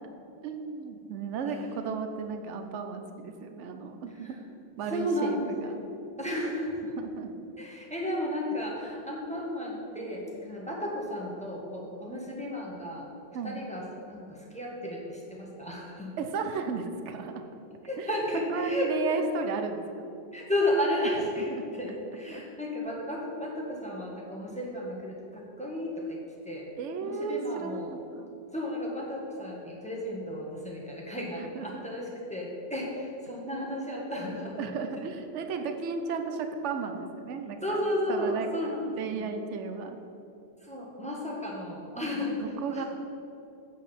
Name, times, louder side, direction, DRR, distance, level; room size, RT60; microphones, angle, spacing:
voice 1, 0.4-4.3 4.8-5.8 7.0-7.3 13.3-13.6 16.2-17.4 18.0-18.1 18.5-20.1 21.5-21.6 22.3-22.4 26.8-28.3 31.5-31.8 34.6-37.8 38.1-40.0 42.4-42.8, right 5 dB, 70° right, 6 dB, 0.7 m, -34 dB
voice 2, 4.8-6.9 7.6-13.1 13.4-16.1 17.8-19.3 20.3-26.2 26.4-26.7 27.0-27.9 28.5-35.1 37.6-39.3 40.6-42.5 42.7-42.9, left 1 dB, 5° left, -3 dB, 1.2 m, -33 dB
8.3 x 5.0 x 7.1 m, 2.7 s
omnidirectional pair, 2.1 m